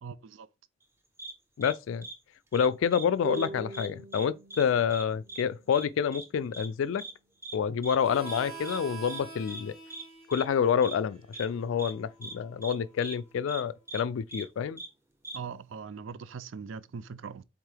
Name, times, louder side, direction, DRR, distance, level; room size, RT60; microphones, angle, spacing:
voice 1, 0.0-0.5 15.3-17.4, right 6 dB, 70° right, 0.4 m, -41 dB
sound 1, 1.2-1.3 1.6-1.7 2.0-2.1 2.5-3.1 3.3-3.5 3.7-4.3 4.5-4.6 4.9-5.0 5.3-5.4 5.7-5.9 6.1-6.3 6.5-6.7 7.0-7.1 7.4-7.6 7.8-8.0 8.3-8.4 8.7-8.8 9.1-9.2 9.5-9.6 9.9-10.0 10.3-10.4 10.8-11.0 11.3-11.5 11.8-11.9 12.2-12.3 12.6-12.8 13.0-13.2 13.5-13.6 13.9-14.0 14.3-14.4 14.8-14.9 15.2-15.4, right 2 dB, 10° right, 0.8 m, -41 dB
voice 2, 1.6-2.1 2.5-7.0 7.5-9.7 10.3-14.8, left 7 dB, 75° left, 0.3 m, -28 dB
sound 2, 3.2-6.5, right 2 dB, 45° right, 1.7 m, -43 dB
Harmonica, 8.0-13.3, right 5 dB, 30° right, 3.1 m, -46 dB
8.0 x 3.6 x 3.4 m
head